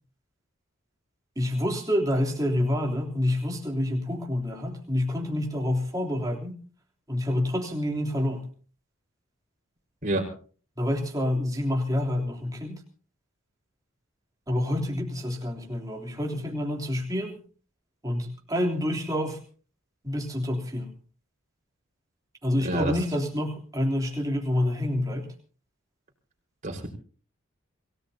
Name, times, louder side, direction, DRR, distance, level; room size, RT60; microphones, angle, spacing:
voice 1, 1.4-6.6 7.1-8.5 10.8-12.8 14.5-17.4 18.0-19.4 20.0-20.9 22.4-25.3, left 1 dB, 15° right, -1 dB, 3.3 m, -28 dB
voice 2, 10.0-10.3 22.6-23.0 26.6-26.9, right 1 dB, 40° right, 2 dB, 4.8 m, -28 dB
27.5 x 18.0 x 2.8 m, 0.42 s
head